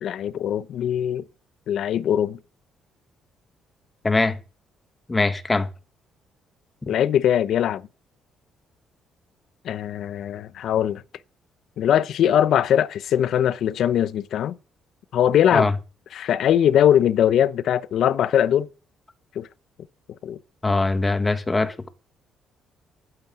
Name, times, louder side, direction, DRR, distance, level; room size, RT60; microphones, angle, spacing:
voice 1, 0.0-1.2 1.7-2.4 6.9-7.8 9.6-11.0 11.8-14.6 15.1-15.7 16.1-18.7 19.4-19.5 20.2-20.4, left 10 dB, 65° left, 0.8 m, -21 dB
voice 2, 4.0-4.4 5.1-5.7 15.5-15.7 20.6-21.9, left 3 dB, 20° left, 1.6 m, -22 dB
14.5 x 9.2 x 7.7 m
cardioid pair, 120°, 0 cm